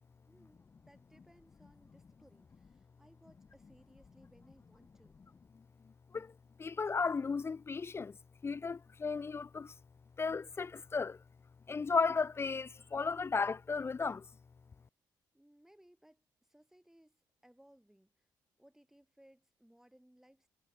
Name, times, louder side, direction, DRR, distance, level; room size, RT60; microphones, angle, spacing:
voice 1, 0.3-5.2 15.3-18.3 18.6-20.5, right 1 dB, 5° right, 3.1 m, -64 dB
voice 2, 6.6-8.1 8.4-9.7 10.2-11.2 11.7-14.2, left 4 dB, 30° left, 0.4 m, -34 dB
cardioid pair, 80°, 9 cm